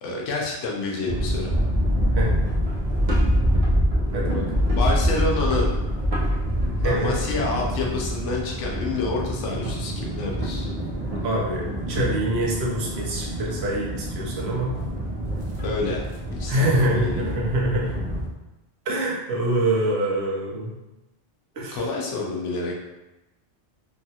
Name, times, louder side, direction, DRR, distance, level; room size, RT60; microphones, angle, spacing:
voice 1, 0.0-1.6 4.7-5.7 6.8-10.7 15.6-17.2 21.7-22.7, left 3 dB, 85° left, -1 dB, 0.9 m, -28 dB
sound 1, 1.0-18.3, equal, 45° right, 0.5 m, -25 dB
voice 2, 4.1-4.4 6.8-7.1 11.2-14.8 16.5-18.0 18.9-20.7 21.6-21.8, right 1 dB, 65° right, -4 dB, 0.9 m, -25 dB
3.0 x 2.3 x 2.7 m, 1.0 s
omnidirectional pair, 1.2 m